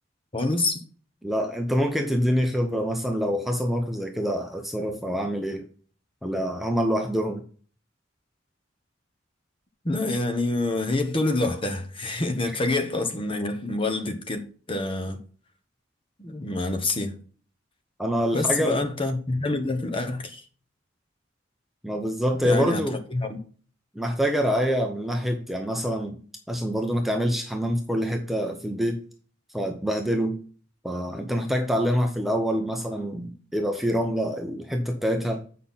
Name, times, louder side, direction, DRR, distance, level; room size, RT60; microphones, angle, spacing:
voice 1, 0.3-0.8 9.8-14.4 14.7-15.2 16.2-17.2 18.3-20.4 22.4-22.8 23.1-23.4, left 2 dB, 30° left, 1.2 m, -27 dB
voice 2, 1.2-5.7 6.2-7.4 18.0-18.8 21.8-23.0 23.9-26.2 26.5-29.0 29.5-30.4 30.8-35.4, equal, ahead, 0.8 m, -26 dB
8.4 x 5.6 x 4.1 m
head